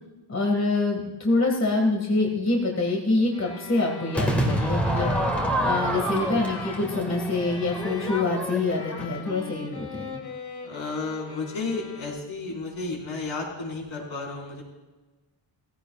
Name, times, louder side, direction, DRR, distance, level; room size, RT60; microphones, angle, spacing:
voice 1, 0.3-5.1 5.6-10.2, left 2 dB, 35° left, 0 dB, 2.1 m, -25 dB
sound 1, 3.3-12.5, left 5 dB, 55° left, 1.8 m, -40 dB
Crowd / Fireworks, 4.1-9.4, equal, 5° left, 1.9 m, -28 dB
voice 2, 10.6-14.6, left 3 dB, 85° left, -2 dB, 4.9 m, -32 dB
18.5 x 16.0 x 2.4 m, 1.2 s
wide cardioid pair, 170°, 46 cm